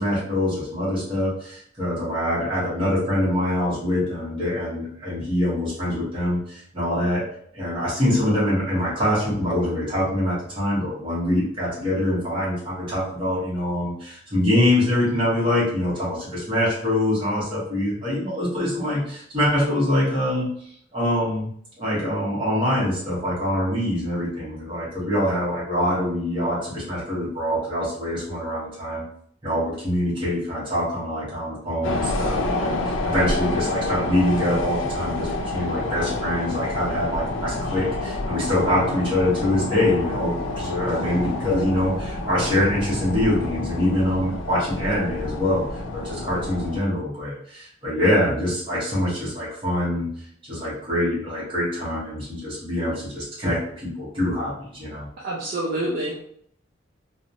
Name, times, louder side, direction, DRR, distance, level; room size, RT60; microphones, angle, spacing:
voice 1, 0.0-7.3 7.5-20.5 20.9-21.5 21.8-29.0 29.4-50.1 50.4-55.1, left 1 dB, 25° right, -9 dB, 0.9 m, -24 dB
sound 1, 31.8-46.8, left 2 dB, 75° left, 0.4 m, -28 dB
voice 2, 55.2-56.3, right 1 dB, 50° right, -4 dB, 0.5 m, -27 dB
3.0 x 2.0 x 2.6 m, 0.65 s
head